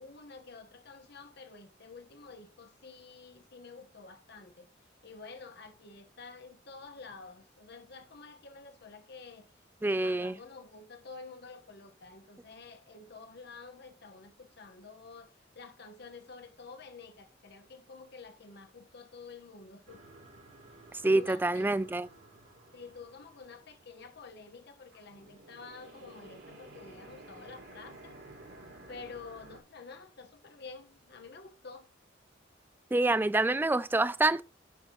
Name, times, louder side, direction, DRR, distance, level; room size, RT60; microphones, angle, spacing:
voice 1, 0.0-4.7 5.0-9.5 9.9-20.0 20.7-21.7 22.7-28.2 28.9-31.9, left 4 dB, 60° left, 1.2 m, -49 dB
voice 2, 9.8-10.3 21.0-22.1 32.9-34.4, right 2 dB, 10° right, 0.3 m, -26 dB
sound 1, 19.9-24.7 24.9-29.6, right 2 dB, 70° right, 3.1 m, -53 dB
10.5 x 6.5 x 3.0 m
head